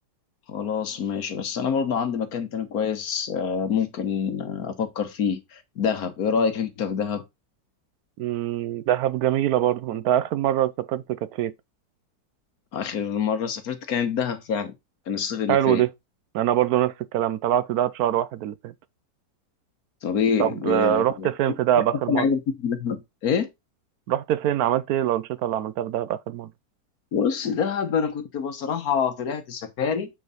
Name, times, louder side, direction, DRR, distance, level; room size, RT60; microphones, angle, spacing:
voice 1, 0.5-7.2 12.7-14.7 15.1-15.8 20.0-21.3 22.1-23.5 27.1-30.1, left 6 dB, 60° left, 1.4 m, -26 dB
voice 2, 8.2-11.5 15.5-15.9 16.3-18.7 20.4-22.3 24.1-26.5, right 12 dB, 70° right, 1.0 m, -24 dB
7.2 x 4.6 x 3.9 m
omnidirectional pair, 1.9 m